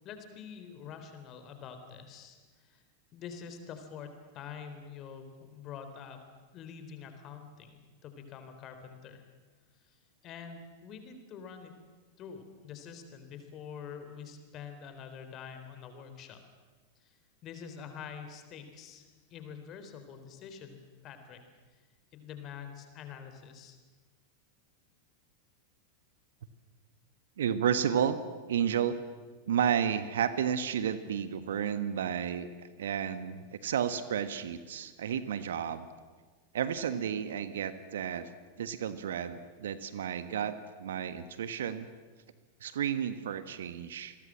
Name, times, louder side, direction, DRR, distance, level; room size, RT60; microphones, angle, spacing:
voice 1, 0.0-2.8 3.1-6.2 6.5-9.2 9.9-10.0 10.2-11.7 12.2-16.4 17.0-17.1 17.4-20.8 21.0-21.4 22.1-23.8, left 7 dB, 35° left, 7 dB, 3.7 m, -46 dB
voice 2, 27.4-28.2 28.5-28.9 29.5-35.9 36.5-38.3 38.6-41.9 42.6-44.2, right 8 dB, 60° right, 13 dB, 1.4 m, -32 dB
28.0 x 21.0 x 7.5 m, 1.4 s
figure-of-eight pair, 90°, 0 cm